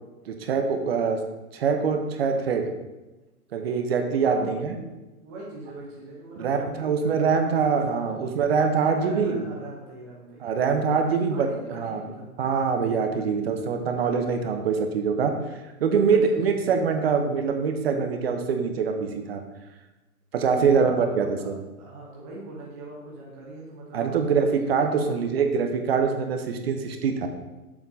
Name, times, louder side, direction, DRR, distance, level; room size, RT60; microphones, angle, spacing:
voice 1, 0.3-1.2 1.5-2.7 3.5-4.8 6.4-9.4 10.4-12.0 12.4-15.3 15.8-19.4 20.3-21.5 23.9-27.3, right 5 dB, 45° right, 6 dB, 0.8 m, -24 dB
voice 2, 4.2-4.8 5.2-8.1 8.8-10.5 11.0-12.3 13.2-13.8 16.1-16.8 20.6-21.5 21.8-24.1 24.6-25.4, right 2 dB, 15° right, -5 dB, 0.5 m, -42 dB
7.1 x 3.6 x 5.4 m, 1.1 s
hypercardioid pair, 160°, 44 cm